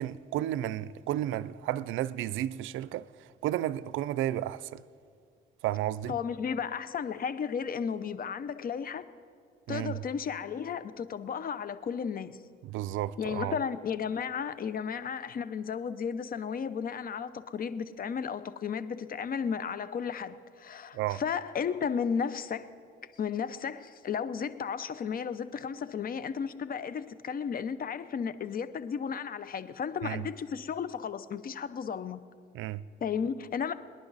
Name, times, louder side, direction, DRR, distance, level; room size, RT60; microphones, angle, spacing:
voice 1, 0.0-4.8 5.6-6.1 9.7-10.0 12.6-13.6 20.9-21.2 30.0-30.2 32.5-32.9, right 13 dB, 85° right, 0.4 m, -32 dB
voice 2, 6.1-9.0 9.7-12.4 13.2-22.7 23.2-32.2 33.0-33.7, left 7 dB, 45° left, 0.7 m, -34 dB
25.0 x 10.5 x 4.0 m
cardioid pair, 90°, 20 cm